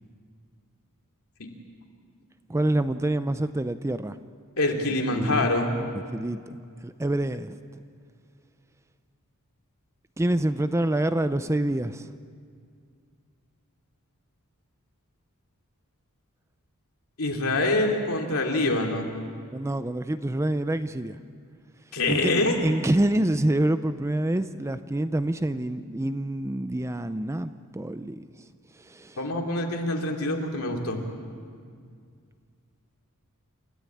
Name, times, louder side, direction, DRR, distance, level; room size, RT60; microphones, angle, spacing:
voice 1, 2.5-4.2 5.1-5.5 6.1-6.6 6.8-7.8 10.2-12.1 19.5-21.2 22.1-22.3 22.6-28.3 28.8-29.2, right 1 dB, 15° right, 11 dB, 0.5 m, -27 dB
voice 2, 4.6-5.7 17.2-19.1 21.9-22.6 29.2-31.0, left 2 dB, 70° left, 1 dB, 2.9 m, -25 dB
28.5 x 14.0 x 8.6 m, 2.2 s
head